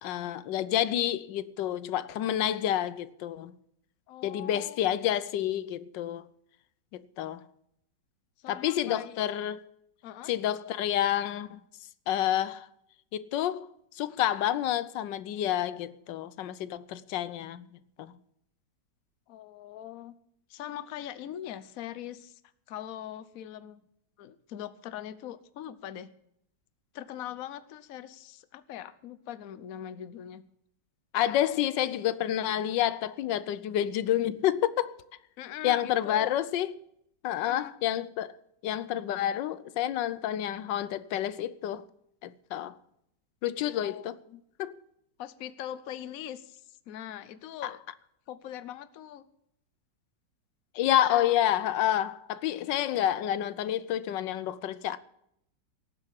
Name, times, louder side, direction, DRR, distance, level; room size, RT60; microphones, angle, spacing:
voice 1, 0.0-3.5 4.2-6.2 6.9-7.4 8.5-9.7 10.3-11.6 12.1-12.7 13.1-13.7 13.9-18.1 31.1-34.9 35.6-36.7 37.2-38.3 38.6-41.9 42.2-42.7 43.4-44.2 44.6-44.8 47.6-47.7 50.7-55.0, left 11 dB, 90° left, 1.4 m, -29 dB
voice 2, 4.1-4.9 8.4-9.2 10.0-10.3 19.3-20.1 20.5-22.4 22.7-23.8 24.2-26.1 26.9-30.4 35.4-36.3 37.5-37.7 43.8-44.4 45.2-47.8 48.3-49.3, left 11 dB, 60° left, 1.1 m, -41 dB
18.5 x 7.6 x 7.5 m
omnidirectional pair, 1.9 m